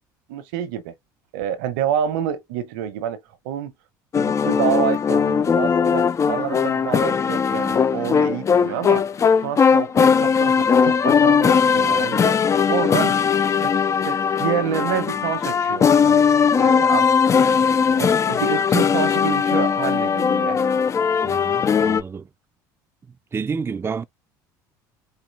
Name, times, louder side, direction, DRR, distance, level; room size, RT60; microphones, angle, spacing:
voice 1, 0.3-0.9 1.3-3.7 4.2-9.1 9.4-12.4 12.7-13.2 13.6-13.7 14.0-16.3 16.5-17.1 18.0-20.7, right 10 dB, 80° right, 1.2 m, -28 dB
sound 1, 4.1-22.0, left 6 dB, 30° left, 0.5 m, -19 dB
voice 2, 21.2-22.3 23.3-24.0, right 5 dB, 25° right, 0.5 m, -29 dB
4.5 x 2.9 x 4.1 m
supercardioid pair, 85°, 10 cm